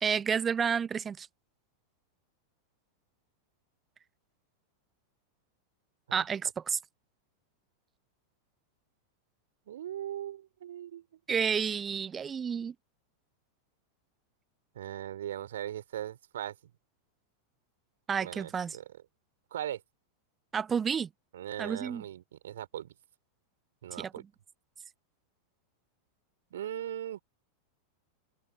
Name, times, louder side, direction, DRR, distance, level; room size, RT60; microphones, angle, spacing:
voice 1, 0.0-1.3 6.1-6.8 11.3-12.7 18.1-18.8 20.5-21.1 21.6-22.0 24.0-24.1, right 7 dB, 20° right, 0.8 m, -30 dB
voice 2, 9.7-11.0 14.7-16.6 18.2-19.0 19.5-19.8 21.3-22.9 23.8-24.2 26.5-27.2, right 11 dB, 60° right, 4.3 m, -39 dB
open air
figure-of-eight pair, 90°, 0 cm